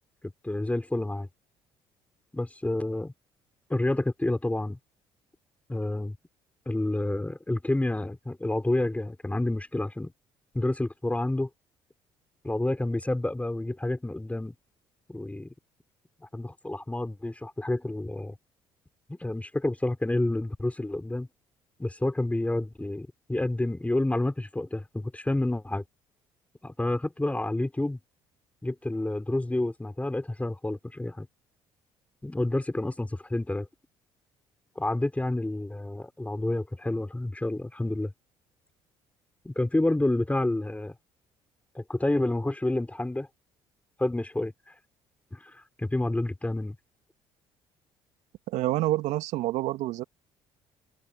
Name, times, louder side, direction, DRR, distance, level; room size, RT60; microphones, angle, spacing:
voice 1, 0.4-1.3 2.3-3.1 3.7-4.8 5.7-6.2 6.7-10.1 10.5-11.5 12.4-14.5 15.1-15.5 16.2-18.3 19.1-21.3 21.8-25.8 26.6-28.0 28.6-31.3 32.2-33.7 34.8-38.1 39.4-40.9 41.7-43.3 44.0-44.5 45.3-46.8, left 1 dB, 10° left, 5.5 m, -29 dB
voice 2, 48.5-50.0, right 16 dB, 70° right, 2.5 m, -27 dB
hypercardioid pair, 60°, 12 cm